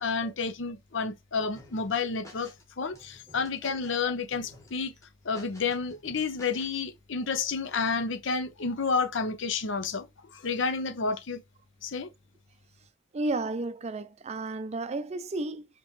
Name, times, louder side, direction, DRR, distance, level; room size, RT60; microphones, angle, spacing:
voice 1, 0.0-4.9 5.2-11.4 11.8-12.1, left 4 dB, 65° left, 0.7 m, -30 dB
sound 1, 1.6-2.6 2.9-4.0 4.3-4.7 5.0-6.8, left 1 dB, 15° left, 1.5 m, -52 dB
voice 2, 13.1-15.7, right 2 dB, 35° right, 0.4 m, -32 dB
5.2 x 3.0 x 3.1 m
head